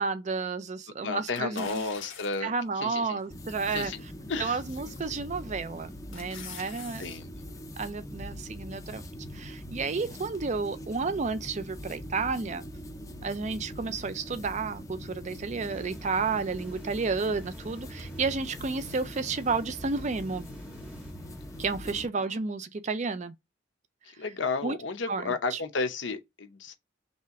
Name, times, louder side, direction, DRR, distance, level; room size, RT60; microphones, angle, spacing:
voice 1, 0.0-1.8 2.4-3.9 4.4-7.0 7.8-9.0 9.3-12.6 13.2-20.5 21.6-23.3 24.6-24.8 25.1-25.6, right 4 dB, 35° right, 0.5 m, -31 dB
voice 2, 1.0-3.2 3.7-4.0 4.3-5.0 7.0-7.4 21.9-22.3 24.0-26.7, left 4 dB, 65° left, 0.7 m, -33 dB
sound 1, 1.3-2.6 3.2-3.3 4.9-5.2 5.6-7.2 7.5-7.6, left 6 dB, 90° left, 1.2 m, -45 dB
sound 2, 3.3-22.1, equal, 15° left, 0.5 m, -42 dB
sound 3, 15.6-22.1, equal, 5° right, 0.8 m, -52 dB
3.3 x 2.7 x 4.6 m
head